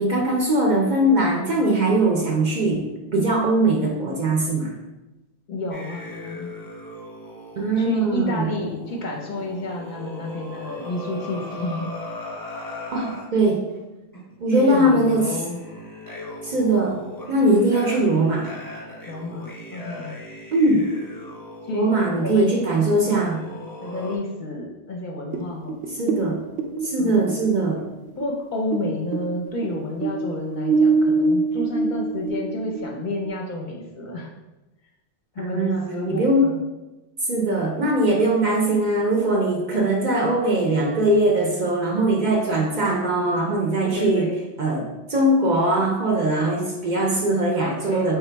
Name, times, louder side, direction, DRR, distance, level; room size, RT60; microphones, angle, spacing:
voice 1, 0.0-2.9 3.1-4.7 7.6-8.5 12.9-13.6 14.4-15.3 16.4-17.0 17.3-18.5 20.5-20.9 21.7-23.4 25.9-26.4 26.8-27.8 35.4-36.5 37.3-44.3 44.6-48.2, right 1 dB, 50° right, 0 dB, 0.7 m, -21 dB
voice 2, 5.5-6.6 7.7-11.9 14.5-15.7 16.9-17.1 19.1-20.2 21.7-22.5 23.1-25.8 27.0-27.2 28.2-34.3 35.3-36.6 43.8-44.4 47.6-48.2, left 1 dB, 50° left, -1 dB, 0.7 m, -30 dB
sound 1, 5.7-13.3 14.1-14.4 15.0-24.2, left 1 dB, 20° left, 1.0 m, -38 dB
sound 2, 25.3-28.9 29.1-33.3, right 3 dB, 85° right, 0.9 m, -24 dB
3.6 x 3.0 x 4.4 m, 1.0 s
omnidirectional pair, 1.1 m